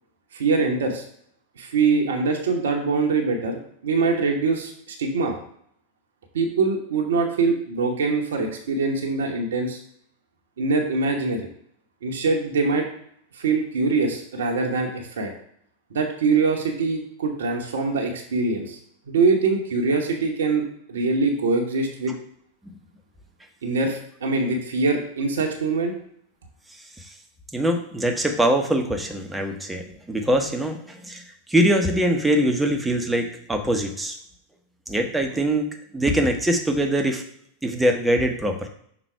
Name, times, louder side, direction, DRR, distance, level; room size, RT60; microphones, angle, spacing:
voice 1, 0.3-1.0 1.6-5.3 6.3-9.8 10.6-11.4 12.0-12.9 13.3-15.3 15.9-18.8 19.1-22.1 23.6-25.9, right 4 dB, 65° right, 2 dB, 1.0 m, -23 dB
voice 2, 27.5-31.2 31.5-34.2 34.9-35.7 35.9-37.2 37.6-38.7, right 1 dB, 5° right, 4 dB, 1.0 m, -23 dB
6.1 x 3.9 x 4.6 m, 0.68 s
figure-of-eight pair, 90°, 0 cm